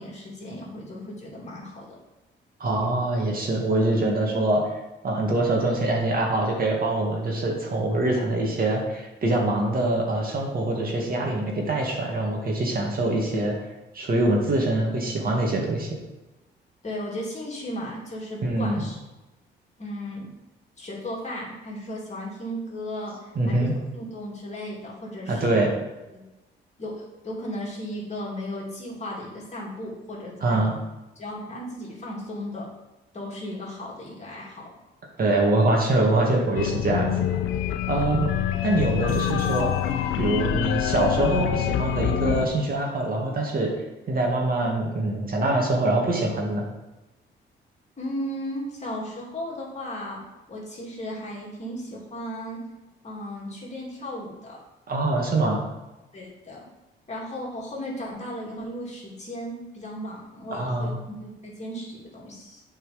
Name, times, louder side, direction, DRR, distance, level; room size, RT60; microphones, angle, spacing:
voice 1, 0.0-2.0 16.8-19.0 19.8-20.3 20.8-23.7 23.9-25.5 26.1-26.2 26.8-30.7 31.2-32.7 33.1-34.8 48.0-50.2 50.5-52.6 53.0-54.6 56.1-56.6 57.1-62.6, equal, 35° left, -3 dB, 2.7 m, -35 dB
voice 2, 2.6-4.8 5.0-13.5 13.9-15.9 18.4-18.8 23.4-23.7 25.3-25.7 30.4-30.7 35.2-37.3 37.9-38.2 38.6-39.7 40.2-43.7 44.1-46.6 54.9-55.6 60.5-61.0, right 2 dB, 50° right, -1 dB, 2.1 m, -24 dB
sound 1, 36.6-42.5, left 10 dB, 85° left, 0.6 m, -26 dB
8.1 x 4.6 x 5.2 m, 1.0 s
cardioid pair, 90°, 20 cm